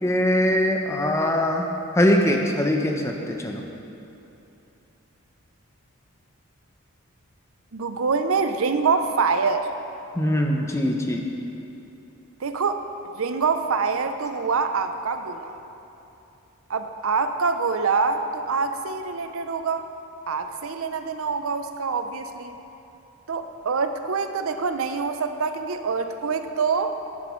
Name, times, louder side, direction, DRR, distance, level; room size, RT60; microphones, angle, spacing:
voice 1, 0.0-1.7 2.0-3.6 10.1-11.2, left 1 dB, 10° left, 2 dB, 0.6 m, -22 dB
voice 2, 7.7-9.7 12.4-12.8 13.1-15.5 16.7-19.8 20.3-22.5 23.3-26.9, right 5 dB, 70° right, 8 dB, 0.6 m, -25 dB
11.0 x 11.0 x 3.1 m, 2.9 s
head